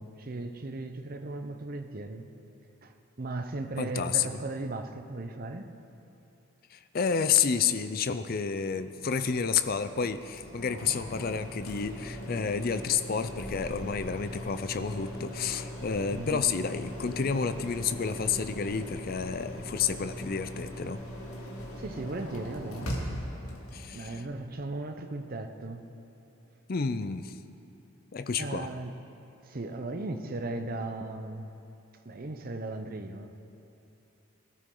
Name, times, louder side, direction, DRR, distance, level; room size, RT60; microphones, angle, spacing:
voice 1, 0.0-2.3 2.8-5.7 16.1-16.5 21.8-22.9 23.9-25.9 28.4-28.9 29.5-31.5 32.0-33.4, right 2 dB, 40° right, 6 dB, 0.7 m, -37 dB
voice 2, 3.8-4.3 6.7-21.0 23.7-24.2 26.7-27.4 28.1-28.7, left 6 dB, 45° left, 11 dB, 0.5 m, -30 dB
sound 1, 9.0-24.2, equal, 90° left, 2.1 m, -40 dB
18.0 x 12.5 x 3.8 m, 2.9 s
head